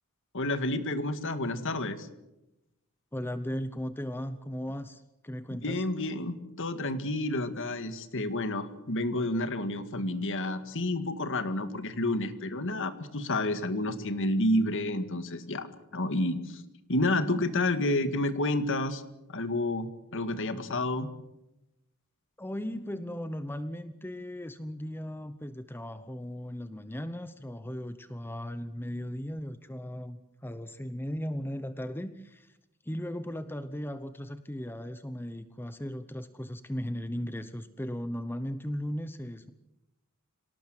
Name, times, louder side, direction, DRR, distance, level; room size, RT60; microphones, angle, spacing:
voice 1, 0.3-2.1 5.5-15.7 15.9-16.6 16.9-19.0 19.3-19.9 20.1-21.1, left 1 dB, 60° left, 10 dB, 2.1 m, -30 dB
voice 2, 3.1-5.8 20.4-20.7 22.4-32.6 32.8-39.5, equal, 10° left, 11 dB, 0.8 m, -37 dB
26.0 x 19.0 x 7.9 m, 0.93 s
head